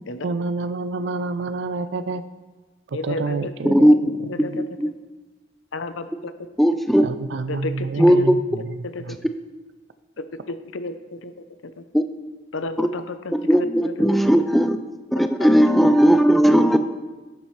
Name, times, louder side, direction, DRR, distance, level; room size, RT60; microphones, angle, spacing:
voice 1, 0.2-2.2 2.9-3.9 4.2-4.5 7.0-9.2, right 3 dB, 60° right, 12 dB, 0.4 m, -28 dB
voice 2, 2.9-3.5 4.3-4.6 5.7-6.3 6.7-6.8 7.5-8.3 8.8-9.2 10.2-11.3 11.8-11.9 12.5-14.1 16.6-16.8, left 2 dB, 85° left, 10 dB, 0.7 m, -32 dB
voice 3, 4.5-4.9 6.6-7.1 8.0-8.3 11.9-12.0 12.8-12.9 13.3-14.8 15.1-16.8, equal, ahead, 8 dB, 0.4 m, -16 dB
11.0 x 7.2 x 4.6 m, 1.2 s
head